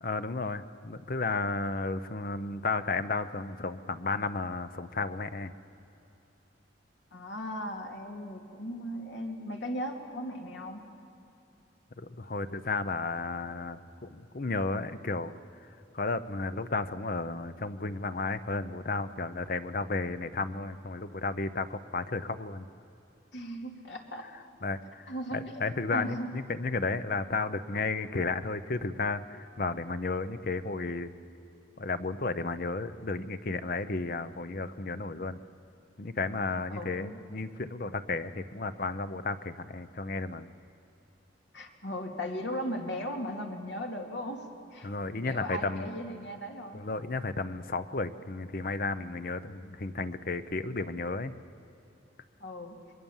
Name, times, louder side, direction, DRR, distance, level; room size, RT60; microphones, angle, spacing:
voice 1, 0.0-5.5 12.0-15.3 15.9-22.7 24.6-31.1 31.8-35.4 36.0-40.5 44.8-45.9 46.7-51.3, left 3 dB, 50° left, 12 dB, 0.8 m, -33 dB
voice 2, 7.1-10.8 23.3-24.3 25.1-25.6 25.9-26.3 36.7-37.2 41.5-44.9 45.2-46.8 52.4-52.8, equal, 75° left, 2 dB, 2.6 m, -37 dB
27.0 x 22.0 x 7.3 m, 2.8 s
head